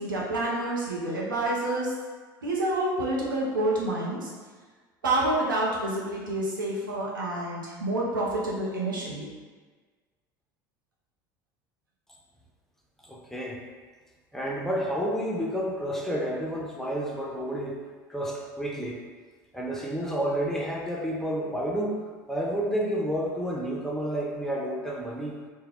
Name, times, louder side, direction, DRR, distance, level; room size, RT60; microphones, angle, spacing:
voice 1, 0.0-1.9 2.4-4.3 5.0-9.3, right 1 dB, 90° right, -5 dB, 0.6 m, -28 dB
voice 2, 13.0-13.6 14.3-17.8 18.1-19.0 19.5-25.4, equal, 5° left, -3 dB, 0.5 m, -30 dB
2.2 x 2.1 x 3.3 m, 1.5 s
hypercardioid pair, 70°, 10 cm